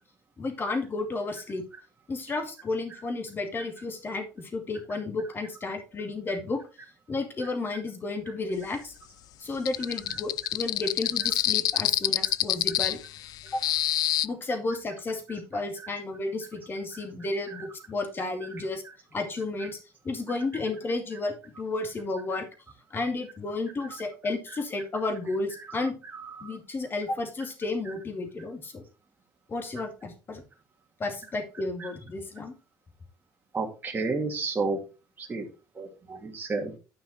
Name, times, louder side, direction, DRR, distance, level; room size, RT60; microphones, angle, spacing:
voice 1, 0.4-1.6 2.1-6.6 7.1-8.9 9.4-13.0 13.5-13.6 14.2-18.8 19.1-19.8 20.0-22.5 22.9-26.0 26.4-28.8 29.5-30.4 31.0-32.5, left 3 dB, 30° left, 5 dB, 2.3 m, -32 dB
sound 1, 9.7-14.3, left 14 dB, 60° left, 0.4 m, -26 dB
voice 2, 33.5-34.8 35.2-35.4 35.8-36.7, right 3 dB, 25° right, 0 dB, 2.3 m, -31 dB
10.0 x 5.6 x 4.2 m, 0.32 s
cardioid pair, 115°, 7 cm